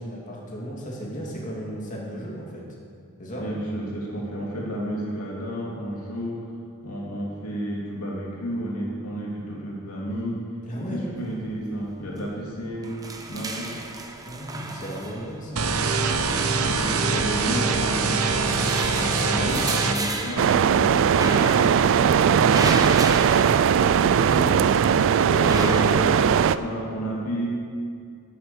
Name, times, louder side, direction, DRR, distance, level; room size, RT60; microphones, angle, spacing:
voice 1, 0.0-2.6 3.2-3.4 10.6-11.0 14.2-16.0 24.0-24.6 25.3-26.2, equal, 35° left, -4 dB, 2.2 m, -34 dB
voice 2, 3.4-6.5 6.8-10.4 10.8-13.0 13.3-13.8 16.6-21.8 25.4-27.5, equal, 90° left, -3 dB, 2.5 m, -32 dB
sound 1, 11.3-11.8 12.1-12.2 12.6-15.7 16.6-17.5 18.0-24.3 24.6-26.5, right 2 dB, 15° right, 0.8 m, -33 dB
sound 2, 15.6-20.0, right 4 dB, 75° right, 0.9 m, -23 dB
sound 3, 20.4-26.6, right 7 dB, 60° right, 0.3 m, -19 dB
11.0 x 7.7 x 7.0 m, 2.2 s
head